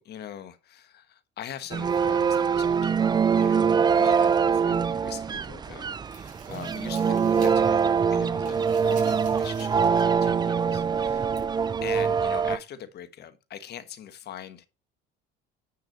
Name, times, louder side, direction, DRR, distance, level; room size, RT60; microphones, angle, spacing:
voice 1, 0.0-11.4 11.8-14.7, left 10 dB, 55° left, 1.4 m, -42 dB
sound 1, 1.7-12.6, right 6 dB, 20° right, 0.4 m, -23 dB
sound 2, 4.3-5.3 5.7-7.8 8.0-10.2 10.5-10.6 11.3-11.4, right 5 dB, 40° right, 5.4 m, -50 dB
9.7 x 6.0 x 3.9 m
cardioid pair, 110°, 21 cm